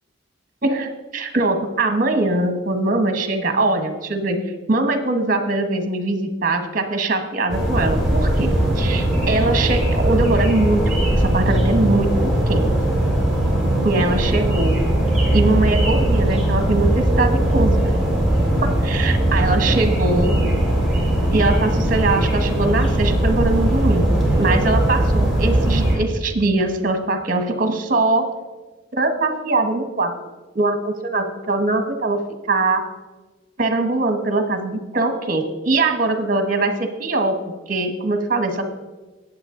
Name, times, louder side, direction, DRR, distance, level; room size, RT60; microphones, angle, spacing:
voice 1, 0.6-4.4 4.7-10.8 11.1-12.6 13.8-14.8 15.3-17.9 18.6-20.3 21.3-24.1 24.4-28.3 28.9-30.1 30.5-32.2 32.5-32.8 33.6-38.7, right 2 dB, 45° right, 7 dB, 1.3 m, -21 dB
sound 1, 7.5-26.0, right 1 dB, ahead, 3.4 m, -19 dB
19.5 x 7.7 x 3.8 m, 1.2 s
head